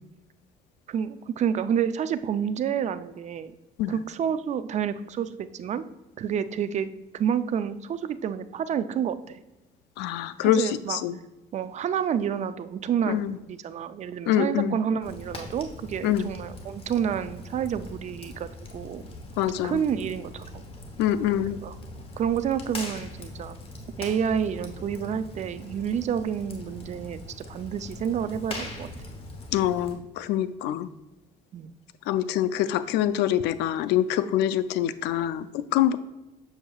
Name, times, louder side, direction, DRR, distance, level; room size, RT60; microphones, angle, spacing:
voice 1, 0.9-3.5 3.9-5.8 6.2-9.4 10.4-11.0 11.5-18.5 18.7-19.1 19.6-20.7 21.5-21.8 22.2-23.6 24.0-27.2 27.5-28.9 31.5-31.7, right 8 dB, 45° right, 12 dB, 0.4 m, -29 dB
voice 2, 10.0-11.1 13.1-13.3 14.3-14.8 16.0-16.3 19.4-19.8 21.0-21.6 29.5-30.9 32.1-36.0, left 11 dB, 85° left, 13 dB, 0.4 m, -25 dB
Fire, 15.0-30.0, left 2 dB, 35° left, 1.1 m, -41 dB
7.1 x 6.5 x 2.3 m, 1.0 s
cardioid pair, 110°, 17 cm